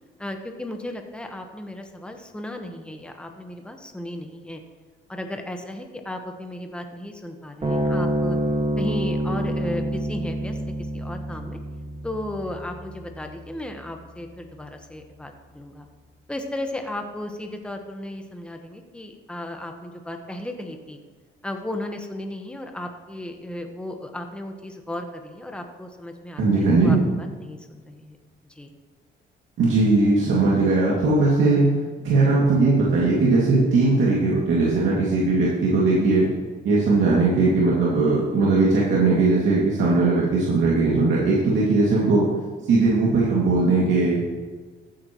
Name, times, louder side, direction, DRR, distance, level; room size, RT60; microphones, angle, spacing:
voice 1, 0.2-4.6 5.1-8.4 8.8-11.6 12.0-15.9 16.3-21.0 21.4-28.2 28.5-28.7, left 1 dB, 5° left, 4 dB, 1.2 m, -35 dB
sound 1, 7.6-14.3, right 1 dB, 25° right, 2.0 m, -28 dB
voice 2, 26.4-27.0 29.6-31.7 32.0-36.3 36.6-42.3 42.7-44.2, right 3 dB, 75° right, -6 dB, 2.4 m, -19 dB
14.5 x 8.7 x 3.1 m, 1.4 s
cardioid pair, 90°, 20 cm